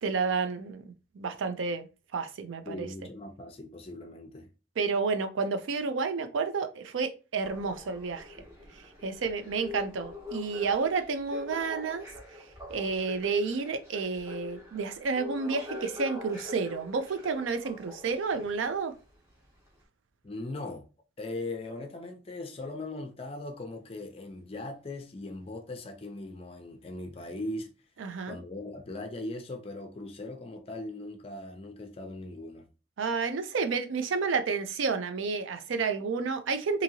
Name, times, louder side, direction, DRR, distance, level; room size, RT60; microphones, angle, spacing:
voice 1, 0.0-1.9 2.1-2.9 4.8-8.4 9.0-12.0 12.7-18.9 28.0-28.4 33.0-36.8, right 4 dB, 90° right, 0.4 m, -30 dB
voice 2, 2.6-4.5 20.2-20.9 21.2-27.7 28.3-32.7, left 2 dB, 30° left, 0.4 m, -39 dB
sound 1, 7.4-19.0 19.7-19.8, left 2 dB, 15° right, 0.7 m, -44 dB
2.7 x 2.7 x 2.7 m
head